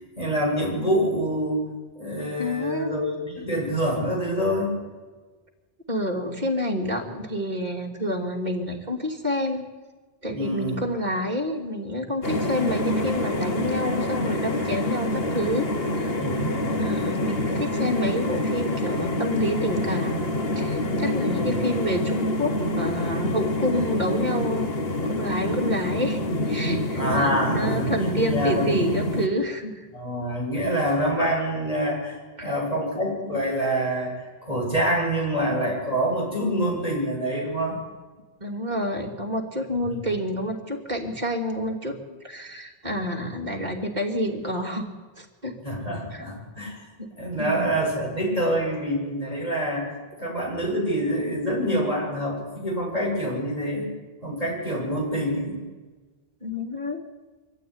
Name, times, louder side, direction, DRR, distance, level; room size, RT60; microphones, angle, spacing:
voice 1, 0.0-1.6 2.0-4.8 10.3-10.8 16.2-16.6 21.3-21.6 26.9-27.9 28.3-28.8 29.9-32.2 32.4-37.8 45.6-46.8 47.2-49.9 50.2-53.9 54.2-55.6, equal, 40° left, -2 dB, 7.7 m, -26 dB
voice 2, 2.4-2.9 5.9-9.6 10.2-15.7 16.0-16.1 16.8-20.3 20.5-24.7 25.0-26.2 26.5-27.0 27.5-29.9 32.4-32.5 38.4-42.0 42.2-44.9 45.2-45.6 46.1-46.3 47.0-47.7 56.4-57.0, equal, 45° right, 0 dB, 3.2 m, -28 dB
sound 1, 12.2-29.3, left 1 dB, 75° left, 1.8 m, -26 dB
23.5 x 14.5 x 9.9 m, 1.3 s
omnidirectional pair, 1.0 m